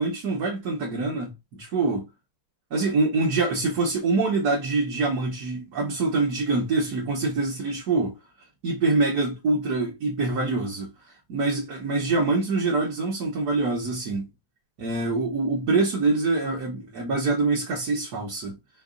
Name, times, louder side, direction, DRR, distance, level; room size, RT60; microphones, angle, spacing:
voice 1, 0.0-2.1 2.7-8.2 8.6-10.9 11.3-14.3 14.8-18.6, right 3 dB, 50° right, 1.5 m, -25 dB
5.1 x 2.5 x 3.7 m
omnidirectional pair, 2.3 m